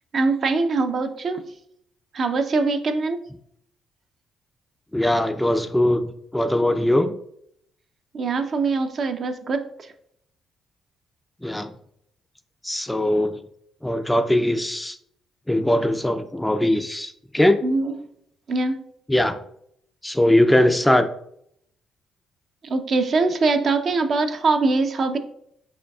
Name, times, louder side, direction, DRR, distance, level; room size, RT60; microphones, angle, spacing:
voice 1, 0.1-1.4 2.1-3.2 8.1-9.6 17.6-17.9 18.5-18.8 22.6-25.2, right 3 dB, 50° right, 7 dB, 0.5 m, -22 dB
voice 2, 4.9-6.0 6.3-7.1 11.4-11.7 12.6-13.4 13.8-15.0 15.5-17.6 19.1-19.4 20.0-21.1, left 1 dB, 5° left, 9 dB, 0.4 m, -20 dB
5.0 x 4.6 x 2.3 m, 0.69 s
cardioid pair, 90°, 0 cm